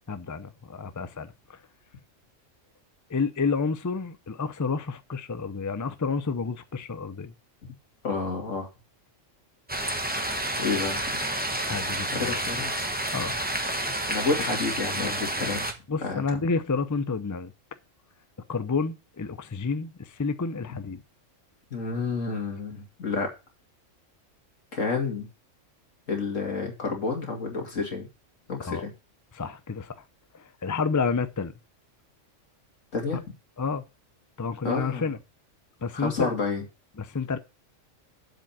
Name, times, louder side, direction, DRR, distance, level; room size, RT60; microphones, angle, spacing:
voice 1, 0.1-1.6 3.1-7.3 11.7-12.4 13.1-13.4 15.9-17.5 18.5-21.0 28.6-28.9 29.3-30.0 30.3-31.5 33.6-33.9 34.4-35.2 35.8-36.3 37.0-37.4, left 4 dB, 25° left, 0.4 m, -30 dB
voice 2, 8.0-8.7 10.6-11.0 12.1-12.7 14.1-15.7 16.0-16.2 21.7-23.3 24.7-25.3 26.1-28.1 28.5-28.9 32.9-33.2 34.6-35.1 35.9-36.6, left 4 dB, 80° left, 2.8 m, -29 dB
sound 1, 9.7-15.7, right 1 dB, 10° right, 1.0 m, -29 dB
7.6 x 5.1 x 7.4 m
omnidirectional pair, 1.3 m